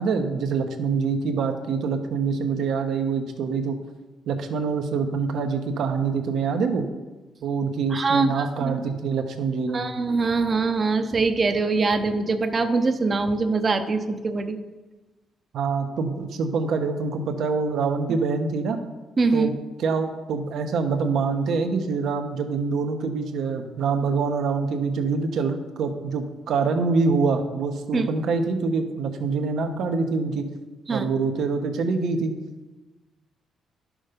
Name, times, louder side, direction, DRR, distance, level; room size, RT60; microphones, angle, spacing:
voice 1, 0.0-3.8 4.3-6.8 7.4-9.8 15.5-18.8 19.3-19.5 19.8-30.4 30.9-32.4, right 4 dB, 70° right, 6 dB, 1.1 m, -25 dB
voice 2, 7.9-8.8 9.7-14.6 19.2-19.5 27.9-28.1 30.9-31.1, right 3 dB, 35° right, 7 dB, 0.9 m, -23 dB
11.5 x 6.3 x 5.2 m, 1.2 s
cardioid pair, 90°, 0 cm